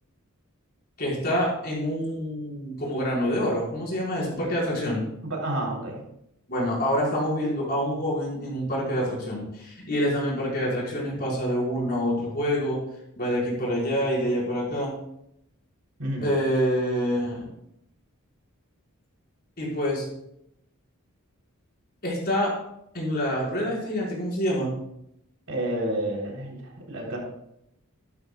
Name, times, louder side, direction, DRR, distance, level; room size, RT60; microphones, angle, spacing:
voice 1, 1.0-5.0 6.5-12.8 13.2-14.9 16.2-17.5 19.6-20.0 22.0-22.5 22.9-24.7, equal, 45° left, -5 dB, 5.0 m, -26 dB
voice 2, 5.2-6.0 16.0-16.3 25.5-27.2, right 1 dB, 75° right, -2 dB, 3.6 m, -30 dB
14.0 x 12.5 x 2.4 m, 0.80 s
head